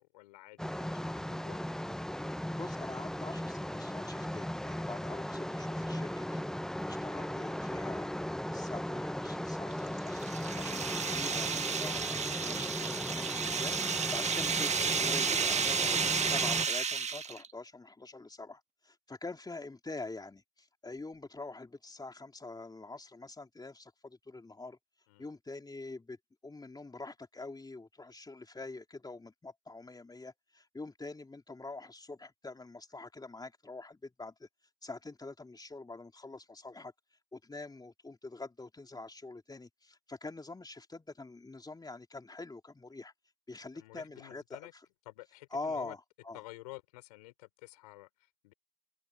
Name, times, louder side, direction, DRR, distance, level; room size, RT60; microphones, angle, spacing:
voice 1, 0.0-1.6 25.1-25.3 43.7-44.7 45.1-46.0 46.3-48.5, left 20 dB, 80° left, 5.9 m, -51 dB
sound 1, 0.6-16.7, left 1 dB, 5° left, 0.7 m, -37 dB
voice 2, 2.5-6.4 6.9-10.2 10.6-24.8 25.2-26.2 26.4-34.5 34.8-36.9 37.3-43.1 43.5-44.6 45.5-46.0 46.2-46.4, left 3 dB, 20° left, 3.4 m, -45 dB
sound 2, 9.7-17.5, right 6 dB, 35° right, 1.6 m, -32 dB
hypercardioid pair, 55°, 20 cm